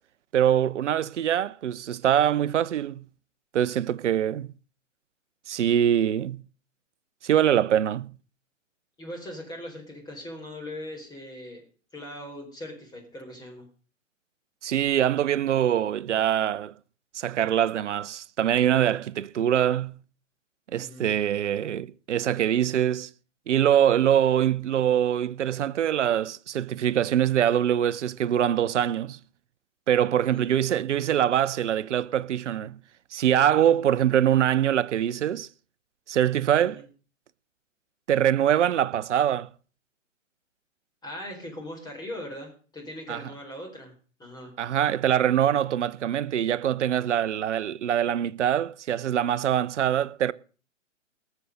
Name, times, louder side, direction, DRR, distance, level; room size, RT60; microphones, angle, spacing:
voice 1, 0.3-3.0 3.5-4.5 5.5-6.4 7.2-8.1 14.6-16.7 17.1-19.9 20.7-23.1 23.5-29.2 29.9-32.8 33.1-35.5 36.1-36.8 38.1-39.5 43.1-43.2 44.6-50.3, right 10 dB, 65° right, 0.8 m, -23 dB
voice 2, 9.0-11.6 11.9-13.7 20.8-21.0 30.2-30.4 36.6-36.8 41.0-43.9 44.2-44.5, left 1 dB, 10° left, 4.6 m, -40 dB
18.5 x 7.2 x 6.5 m
hypercardioid pair, 130°, 38 cm